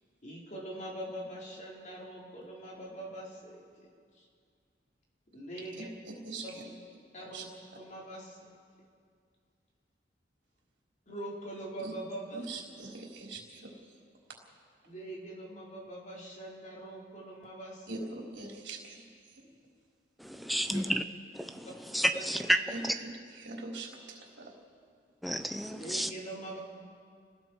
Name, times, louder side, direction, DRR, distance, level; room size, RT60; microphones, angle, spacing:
voice 1, 0.2-3.9 4.1-4.3 5.3-5.9 6.4-6.6 7.1-7.5 7.8-8.6 11.1-12.4 14.8-18.1 20.7-20.8 22.1-22.2 25.7-26.6, right 1 dB, 45° left, -3 dB, 4.5 m, -43 dB
voice 2, 6.0-6.4 7.3-7.4 11.8-11.9 12.3-13.7 14.8-14.9 17.9-19.0 19.3-19.5 22.7-24.5, right 2 dB, 75° right, -1 dB, 4.0 m, -42 dB
voice 3, 20.2-21.0 21.3-21.7 21.9-22.6 22.8-22.9 25.2-26.1, equal, ahead, 6 dB, 0.7 m, -30 dB
29.5 x 20.0 x 4.6 m, 2.1 s
head